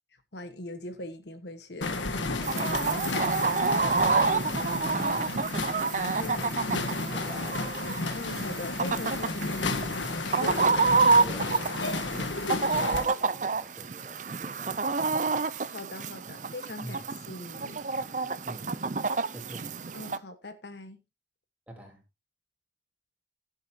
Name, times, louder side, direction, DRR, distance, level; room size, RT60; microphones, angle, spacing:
voice 1, 0.3-2.2 2.5-3.1 6.1-6.4 8.1-10.8 15.7-17.9 19.9-21.0, left 2 dB, 65° left, 1.3 m, -41 dB
sound 1, 1.8-13.0, left 3 dB, 85° left, 1.6 m, -32 dB
Chicken rooster, 2.4-20.2, right 4 dB, 40° right, 0.6 m, -28 dB
voice 2, 6.2-6.8 7.1-7.8 11.2-15.1 16.8-17.0 18.4-18.7 19.3-19.7 21.7-22.0, equal, 10° right, 3.6 m, -46 dB
16.5 x 7.9 x 2.8 m
head